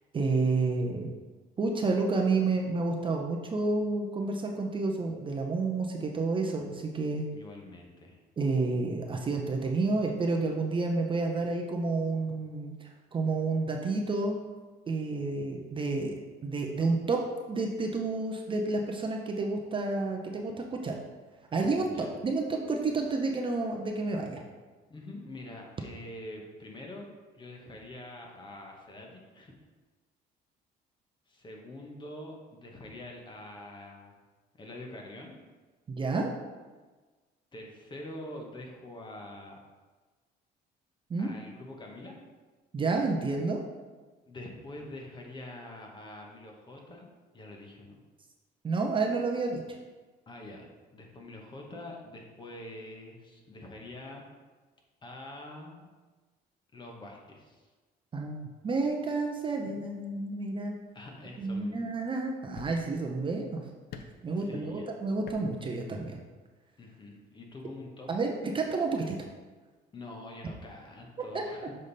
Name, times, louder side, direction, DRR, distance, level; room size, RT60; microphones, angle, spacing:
voice 1, 0.1-1.1 1.6-7.2 8.4-14.4 14.9-16.2 16.4-17.2 17.5-21.0 21.5-24.4 35.9-36.3 41.1-41.3 42.7-43.6 48.6-49.6 58.1-60.7 61.4-63.6 64.2-66.2 68.1-69.2 71.3-71.4, right 3 dB, 30° right, 1 dB, 0.7 m, -30 dB
voice 2, 7.3-8.2 21.8-22.2 24.9-29.5 31.3-34.2 34.6-35.3 37.5-39.6 41.2-42.1 44.3-48.0 50.3-54.3 55.0-55.9 56.7-57.7 60.9-61.8 64.3-64.9 66.8-68.1 69.9-71.7, left 1 dB, 25° left, 0 dB, 1.1 m, -45 dB
sound 1, 60.9-61.1 62.0-62.1 62.6-63.1 63.9-64.3 65.2-65.6 65.8-65.9, left 6 dB, 70° left, 0.5 m, -46 dB
6.5 x 3.6 x 4.1 m, 1.3 s
cardioid pair, 110°, 17 cm